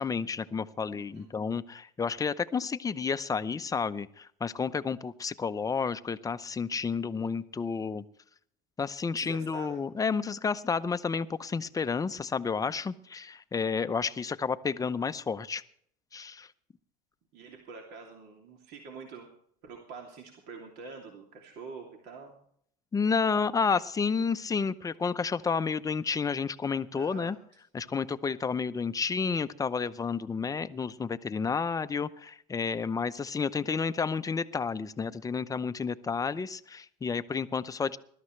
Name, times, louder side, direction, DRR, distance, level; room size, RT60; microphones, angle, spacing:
voice 1, 0.0-8.0 8.8-15.6 16.1-16.5 22.9-27.4 27.7-38.0, left 5 dB, 15° left, 12 dB, 0.7 m, -31 dB
voice 2, 0.9-1.3 9.2-9.8 17.3-19.3 19.6-22.4 26.9-27.3, right 4 dB, 55° right, 1 dB, 2.9 m, -46 dB
21.0 x 12.5 x 3.3 m, 0.64 s
supercardioid pair, 110°, 20 cm